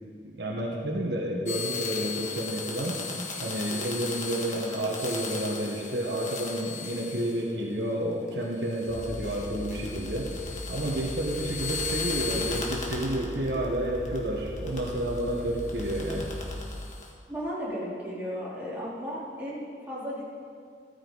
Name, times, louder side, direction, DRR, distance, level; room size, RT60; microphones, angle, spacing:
voice 1, 0.4-3.0 3.4-10.3 10.7-16.3, right 1 dB, 70° right, -2 dB, 1.5 m, -30 dB
sound 1, 1.5-7.6 8.3-13.6 13.9-17.1, left 5 dB, 45° left, 1.8 m, -37 dB
sound 2, 8.9-16.7, equal, 5° left, 3.6 m, -39 dB
voice 2, 17.3-20.2, equal, 10° right, -10 dB, 4.0 m, -35 dB
14.0 x 13.5 x 4.1 m, 2.2 s
head